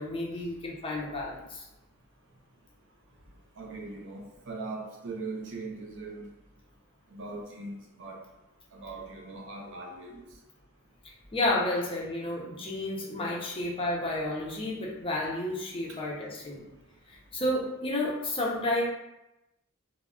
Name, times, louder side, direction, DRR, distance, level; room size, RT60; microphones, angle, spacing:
voice 1, 0.0-1.6 11.3-16.7 17.1-18.8, left 1 dB, 25° left, -3 dB, 0.4 m, -31 dB
voice 2, 3.6-6.3 7.1-8.2 8.7-10.2 15.9-16.0, right 3 dB, 55° right, 0 dB, 0.5 m, -40 dB
2.2 x 2.0 x 3.5 m, 0.94 s
head